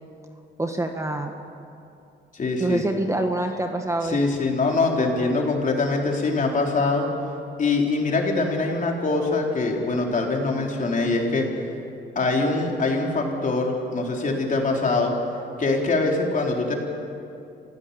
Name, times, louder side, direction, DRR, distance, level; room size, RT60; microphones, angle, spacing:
voice 1, 0.6-1.3 2.6-4.2, right 1 dB, 15° right, 4 dB, 1.5 m, -26 dB
voice 2, 2.3-2.8 4.1-7.1 7.6-11.5 12.2-15.1 15.6-16.8, left 3 dB, 40° left, 0 dB, 4.0 m, -23 dB
27.5 x 16.0 x 7.1 m, 2.6 s
cardioid pair, 90°, 20 cm